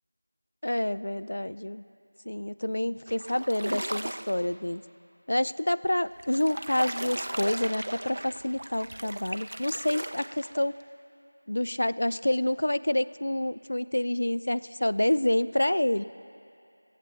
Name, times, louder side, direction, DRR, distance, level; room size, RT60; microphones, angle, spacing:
voice 1, 0.6-1.8 2.3-4.8 5.3-10.7 11.5-16.0, left 1 dB, 60° left, 14 dB, 0.4 m, -28 dB
sound 1, 3.1-4.5 6.1-10.8, right 1 dB, 55° right, 0.4 m, -37 dB
17.0 x 8.2 x 6.4 m, 2.6 s
figure-of-eight pair, 175°, 0 cm